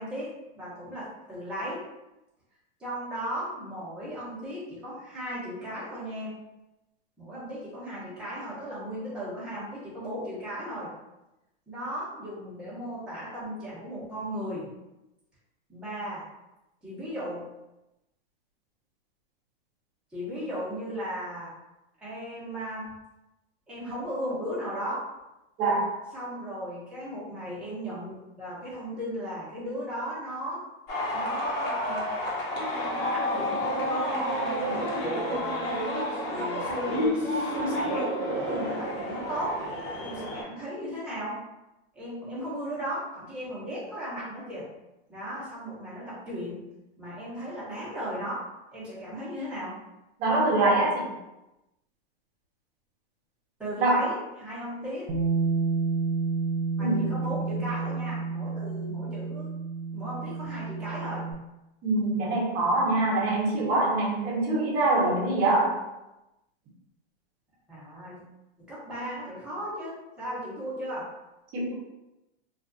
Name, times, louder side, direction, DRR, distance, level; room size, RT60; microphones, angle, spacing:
voice 1, 0.0-1.8 2.8-6.3 7.2-10.9 11.7-14.7 15.7-16.2 16.8-17.5 20.1-21.5 22.0-22.9 23.7-25.0 26.1-30.6 31.1-32.0 33.0-35.7 36.1-39.6 40.0-41.4 42.0-44.7 45.1-46.6 47.0-48.5 48.7-49.8 53.6-55.1 56.8-59.5 59.9-61.3 67.7-68.2 68.7-71.1, equal, 5° right, -11 dB, 0.9 m, -36 dB
voice 2, 25.6-25.9 50.2-51.1 53.8-54.1 56.8-57.1 57.5-57.6 61.8-65.8 71.5-71.8, right 2 dB, 30° right, -3 dB, 0.8 m, -24 dB
sound 1, 30.9-40.4, equal, 65° left, 1.0 m, -30 dB
Bass guitar, 55.1-61.3, right 4 dB, 90° right, 0.7 m, -30 dB
2.4 x 2.4 x 2.5 m, 0.96 s
supercardioid pair, 140°, 30 cm